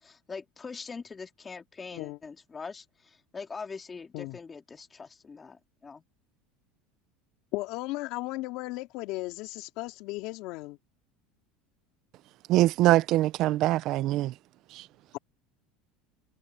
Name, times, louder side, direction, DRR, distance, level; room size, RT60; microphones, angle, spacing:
voice 1, 0.0-6.0, left 5 dB, 20° left, 2.7 m, -43 dB
voice 2, 7.5-10.8, left 20 dB, 65° left, 2.6 m, -35 dB
voice 3, 12.5-14.3 14.7-14.8, right 16 dB, 55° right, 0.7 m, -23 dB
supercardioid pair, 115°, 0 cm